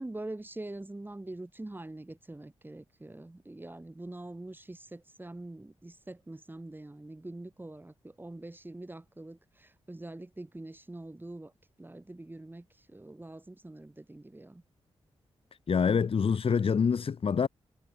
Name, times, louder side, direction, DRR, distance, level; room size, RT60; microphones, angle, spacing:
voice 1, 0.0-11.5 11.8-14.6, right 2 dB, 20° right, 6.0 m, -44 dB
voice 2, 15.7-17.5, left 6 dB, 60° left, 1.9 m, -26 dB
cardioid pair, 60°, 11 cm